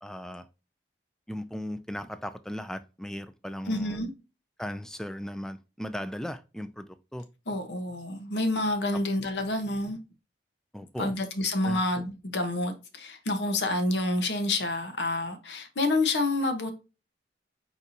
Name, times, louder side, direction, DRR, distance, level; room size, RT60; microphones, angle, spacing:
voice 1, 0.0-0.5 1.3-4.0 4.6-6.9 7.1-7.3 10.7-11.1 11.6-11.8, equal, 5° left, 0.3 m, -37 dB
voice 2, 3.7-4.1 7.5-10.0 11.0-16.7, left 2 dB, 75° left, 1.0 m, -28 dB
4.7 x 4.1 x 2.7 m
head